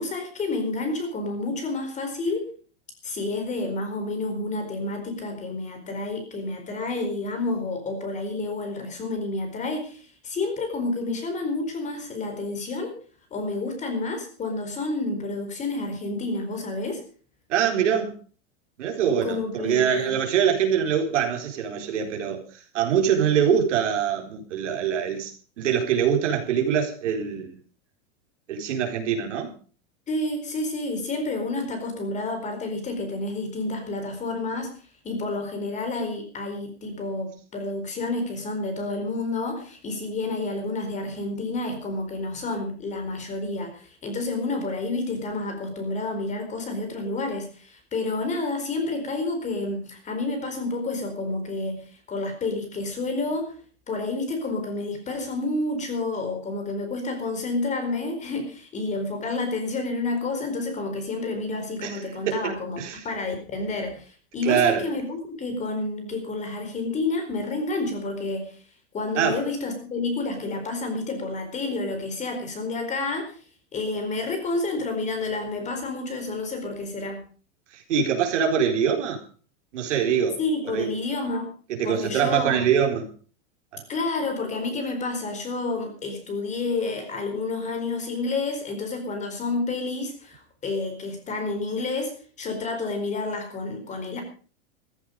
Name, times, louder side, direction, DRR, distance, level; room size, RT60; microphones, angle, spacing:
voice 1, 0.0-2.5 3.0-12.9 13.3-17.0 19.2-20.1 30.1-34.7 35.0-53.5 53.9-68.6 68.9-73.4 73.7-77.2 80.4-81.5 81.8-82.6 83.9-94.2, left 3 dB, 20° left, 4.4 m, -29 dB
voice 2, 17.5-18.2 18.8-22.4 22.7-25.3 25.6-27.6 28.5-29.5 61.8-62.0 62.3-63.0 64.4-64.8 69.2-69.4 77.7-79.2 79.7-80.4 80.7-80.9 81.7-83.1 83.7-83.8, right 8 dB, 85° right, 4.2 m, -24 dB
14.5 x 14.0 x 5.2 m
supercardioid pair, 150°, 35 cm